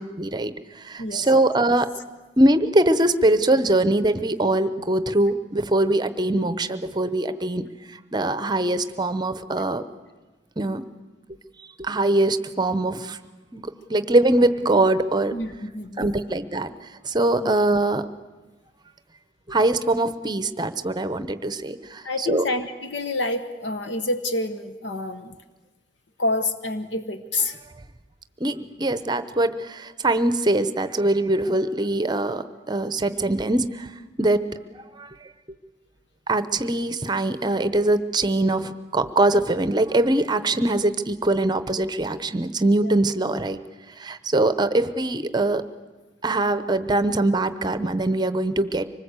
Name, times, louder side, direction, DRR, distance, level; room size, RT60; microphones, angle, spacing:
voice 1, 0.2-1.9 2.4-9.8 10.6-10.8 11.8-13.2 13.5-15.3 16.0-16.7 17.0-18.1 19.5-22.4 28.4-33.9 34.2-34.5 35.0-35.1 36.3-43.6 44.0-45.6 46.2-48.9, right 2 dB, 20° right, 12 dB, 0.8 m, -22 dB
voice 2, 15.3-16.2 17.4-17.5 22.0-25.4 26.2-27.6 42.8-43.0, left 2 dB, 65° left, 9 dB, 1.1 m, -28 dB
25.0 x 20.0 x 8.2 m, 1.2 s
head